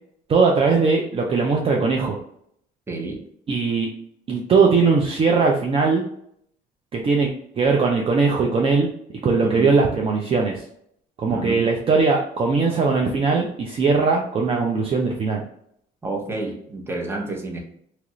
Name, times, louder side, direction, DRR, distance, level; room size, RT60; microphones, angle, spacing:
voice 1, 0.3-2.2 3.5-3.9 4.3-6.0 6.9-8.9 9.2-10.6 11.2-15.4, right 4 dB, 35° right, 0 dB, 0.5 m, -20 dB
voice 2, 11.3-11.6 16.0-17.6, right 2 dB, 15° right, 0 dB, 0.8 m, -29 dB
2.9 x 2.5 x 3.0 m, 0.69 s
cardioid pair, 110°, 17 cm